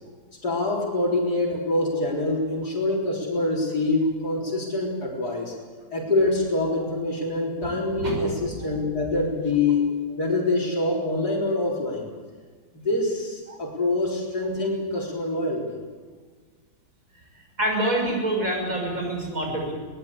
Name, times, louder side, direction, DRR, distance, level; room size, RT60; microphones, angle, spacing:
voice 1, 0.4-5.5 5.9-9.8 10.2-12.1 12.7-15.8, left 2 dB, 65° left, -2 dB, 4.5 m, -25 dB
voice 2, 17.6-19.7, right 1 dB, 50° right, 1 dB, 6.8 m, -26 dB
23.0 x 20.0 x 8.5 m, 1.5 s
omnidirectional pair, 1.8 m